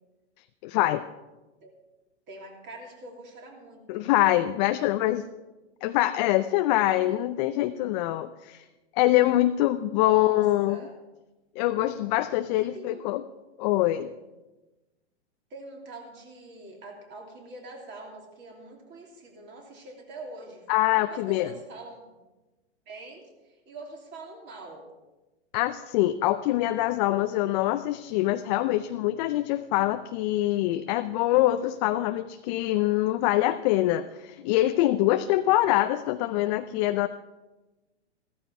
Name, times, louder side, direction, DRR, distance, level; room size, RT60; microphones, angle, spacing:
voice 1, 0.6-1.0 3.9-5.2 5.8-8.7 8.9-10.8 11.6-13.2 13.6-14.1 20.7-21.5 25.5-37.1, left 15 dB, 40° left, 9 dB, 0.5 m, -24 dB
voice 2, 2.3-4.1 10.0-10.4 10.7-10.9 12.5-13.0 15.5-22.2 22.9-24.9 35.2-35.4, right 2 dB, 30° right, 0 dB, 3.0 m, -44 dB
14.0 x 13.5 x 4.7 m, 1.1 s
hypercardioid pair, 115°, 34 cm